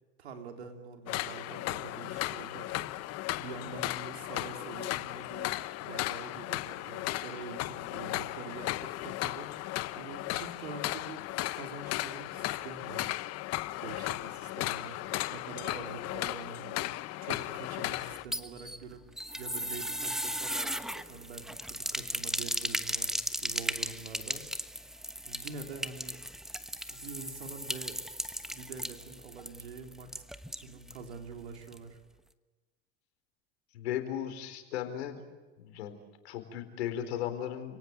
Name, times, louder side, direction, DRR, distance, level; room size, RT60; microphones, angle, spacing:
voice 1, 0.2-9.7 10.0-13.1 13.8-15.0 15.3-24.4 25.3-26.2 26.9-28.0 28.5-30.2 30.5-32.0, right 4 dB, 90° right, 4 dB, 3.6 m, -46 dB
sound 1, 1.1-18.2, left 17 dB, 50° left, 1.1 m, -36 dB
sound 2, 18.1-31.0 31.3-31.4 31.7-31.8, equal, ahead, 1.1 m, -36 dB
voice 2, 33.7-35.2 35.6-36.0 36.2-37.8, left 10 dB, 80° left, 7 dB, 4.3 m, -36 dB
30.0 x 18.5 x 8.0 m, 1.3 s
hypercardioid pair, 95°, 32 cm